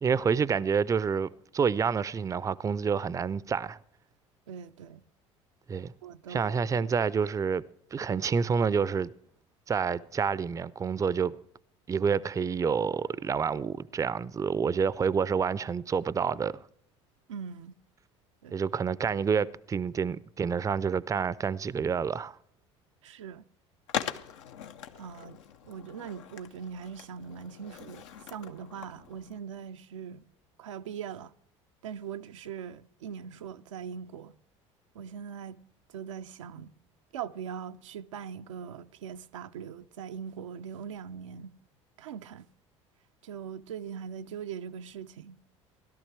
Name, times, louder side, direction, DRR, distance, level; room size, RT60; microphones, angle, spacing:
voice 1, 0.0-3.8 5.7-5.9 6.3-7.6 7.9-9.1 9.7-11.3 11.9-16.5 18.5-22.4, right 6 dB, 20° right, 0.4 m, -28 dB
voice 2, 4.5-5.0 6.0-6.4 17.3-17.7 18.4-18.6 23.0-23.4 25.0-25.4 25.6-30.2 30.6-31.3 31.8-34.4 34.9-35.6 35.9-36.7 37.1-41.5 42.0-42.5 43.2-45.4, right 7 dB, 80° right, 0.4 m, -41 dB
Skateboard, 23.9-29.4, left 9 dB, 75° left, 0.6 m, -41 dB
17.0 x 12.0 x 3.3 m
hypercardioid pair, 65°, 16 cm